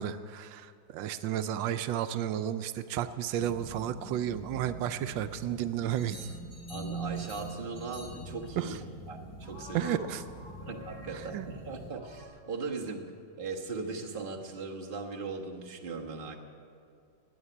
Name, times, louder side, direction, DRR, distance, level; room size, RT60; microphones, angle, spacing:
voice 1, 0.0-6.3 8.6-8.8 9.7-10.2 11.1-11.5, right 10 dB, 85° right, 11 dB, 1.3 m, -32 dB
sound 1, 3.4-11.9, right 3 dB, 10° left, 1.5 m, -44 dB
sound 2, 5.9-8.3 9.4-11.6 11.9-12.3, left 2 dB, 50° left, 4.7 m, -50 dB
voice 2, 6.7-8.8 9.1-10.0 10.6-13.1 13.4-16.4, right 4 dB, 30° right, 0 dB, 1.5 m, -39 dB
17.5 x 8.2 x 10.0 m, 2.4 s
omnidirectional pair, 2.0 m